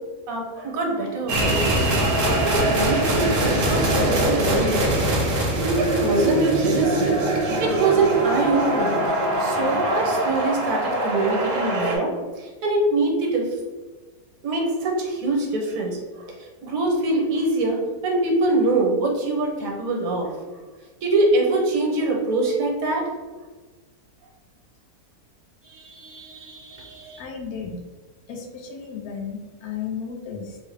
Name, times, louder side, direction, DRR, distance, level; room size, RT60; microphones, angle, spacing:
voice 1, 0.3-2.0 2.4-5.5 5.8-7.2 7.6-9.0 9.4-12.1 12.4-13.5 14.4-16.3 16.6-20.3 21.0-23.0 25.7-27.2, right 2 dB, 70° right, 1 dB, 1.1 m, -24 dB
sound 1, 1.3-12.0, right 1 dB, 50° right, 0.7 m, -22 dB
voice 2, 27.2-27.8 28.3-30.6, left 6 dB, 90° left, 1 dB, 1.2 m, -34 dB
3.8 x 2.1 x 3.2 m, 1.3 s
omnidirectional pair, 1.6 m